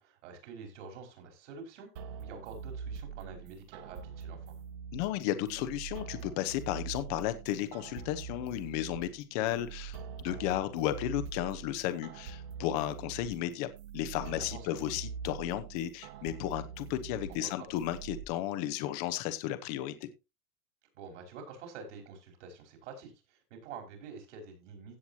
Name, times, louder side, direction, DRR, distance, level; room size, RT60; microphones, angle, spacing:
voice 1, 0.0-4.5 14.2-14.8 17.3-17.7 20.9-25.0, right 5 dB, 55° right, 5 dB, 5.1 m, -47 dB
sound 1, 2.0-18.2, right 6 dB, 20° right, 0.5 m, -44 dB
voice 2, 4.9-13.7 13.9-20.1, left 13 dB, 30° left, 11 dB, 0.9 m, -34 dB
16.0 x 8.0 x 2.8 m, 0.25 s
supercardioid pair, 175°, 43 cm